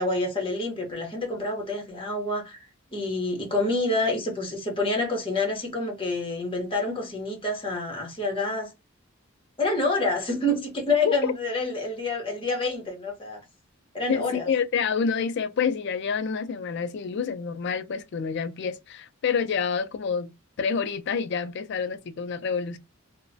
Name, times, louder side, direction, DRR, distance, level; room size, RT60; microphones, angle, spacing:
voice 1, 0.0-2.6 2.9-8.7 9.6-13.4 13.9-14.5, left 2 dB, 25° left, 1.0 m, -27 dB
voice 2, 14.1-20.3 20.6-22.8, left 6 dB, 55° left, 0.3 m, -28 dB
2.9 x 2.1 x 2.6 m
head